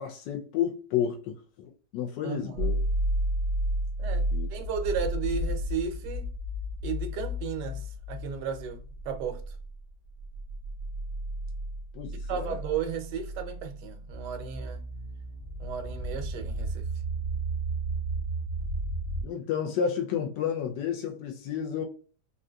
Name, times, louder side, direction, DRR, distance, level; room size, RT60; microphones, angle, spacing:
voice 1, 0.0-2.7 4.3-4.5 11.9-12.6 19.2-21.8, left 8 dB, 85° left, 1.2 m, -31 dB
voice 2, 2.2-2.7 4.0-6.3 6.8-9.4 12.3-14.8 15.6-16.9, right 7 dB, 80° right, 1.2 m, -34 dB
sound 1, 2.6-19.2, right 1 dB, 50° right, 0.5 m, -32 dB
3.7 x 2.6 x 2.2 m
omnidirectional pair, 1.8 m